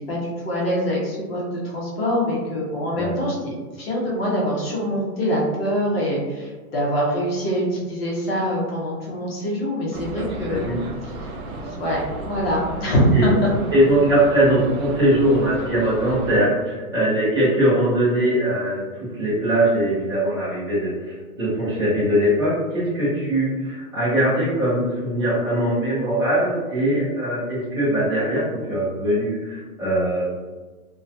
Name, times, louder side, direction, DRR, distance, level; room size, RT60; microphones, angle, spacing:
voice 1, 0.1-10.7 11.6-13.5 23.1-23.2, equal, 40° left, -4 dB, 0.8 m, -24 dB
sound 1, 9.9-16.4, right 2 dB, 70° right, 0.6 m, -34 dB
voice 2, 10.2-10.8 13.1-13.3 13.7-30.3, right 1 dB, 20° right, -13 dB, 0.4 m, -21 dB
2.2 x 2.2 x 2.6 m, 1.3 s
hypercardioid pair, 175°, 45 cm